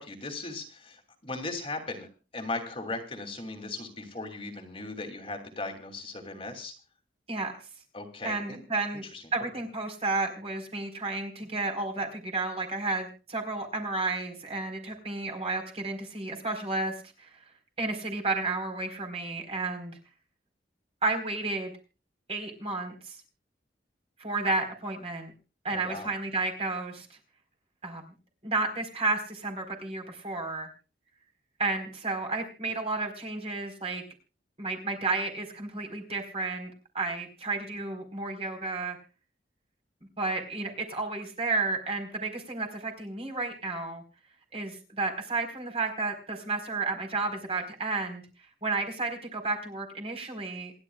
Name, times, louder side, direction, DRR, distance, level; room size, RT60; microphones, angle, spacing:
voice 1, 0.0-2.1 2.3-6.7 7.9-8.6 9.1-9.2 25.7-26.1, left 3 dB, 30° left, 4 dB, 2.8 m, -37 dB
voice 2, 8.2-9.0 9.3-17.4 17.8-20.0 21.0-21.7 22.3-23.2 24.2-25.3 25.6-27.2 27.8-28.0 28.4-30.7 31.6-34.0 34.6-39.0 40.2-44.0 44.5-48.2 48.6-50.7, right 3 dB, 35° right, 3 dB, 4.3 m, -32 dB
27.5 x 11.0 x 2.4 m, 0.34 s
head